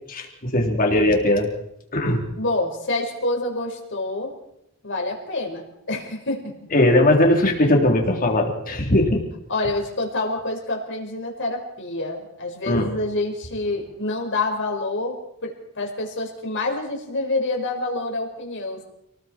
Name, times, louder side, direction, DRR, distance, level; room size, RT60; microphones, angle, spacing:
voice 1, 0.1-1.5 1.9-2.3 6.7-9.2 12.7-12.9, left 1 dB, 40° left, 2 dB, 3.7 m, -19 dB
voice 2, 2.3-4.3 4.8-6.5 9.5-15.2 15.4-18.8, left 2 dB, 55° left, 2 dB, 5.1 m, -27 dB
29.0 x 20.0 x 4.6 m, 0.80 s
head